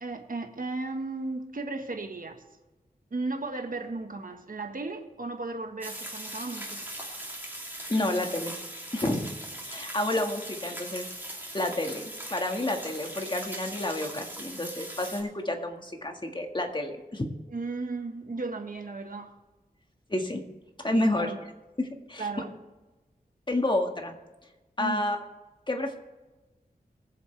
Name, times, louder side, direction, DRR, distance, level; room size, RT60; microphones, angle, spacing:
voice 1, 0.0-2.4 3.1-6.9 17.5-19.3 20.9-21.4 22.2-22.5 24.8-25.1, right 3 dB, 60° right, 4 dB, 1.5 m, -35 dB
sound 1, 5.8-15.2, right 1 dB, 10° right, 3.0 m, -40 dB
voice 2, 7.9-8.5 8.9-9.3 9.7-11.1 11.5-12.0 12.3-17.3 20.1-20.4 20.8-21.3 21.8-22.3 23.5-24.2 24.8-25.2 25.7-26.0, left 1 dB, 30° left, 3 dB, 1.8 m, -29 dB
21.5 x 7.5 x 3.4 m, 1.2 s
wide cardioid pair, 75°, 16 cm